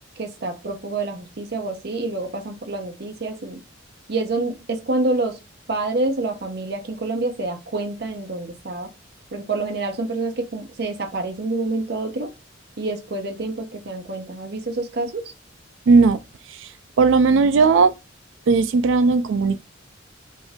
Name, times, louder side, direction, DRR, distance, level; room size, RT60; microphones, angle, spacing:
voice 1, 0.2-3.6 4.1-5.4 5.7-8.9 9.3-12.3 12.8-15.3, right 2 dB, 55° right, 0.7 m, -27 dB
voice 2, 15.9-16.2 16.5-16.7 17.0-17.9 18.5-19.6, right 4 dB, 75° right, 0.4 m, -16 dB
5.3 x 2.6 x 3.5 m
head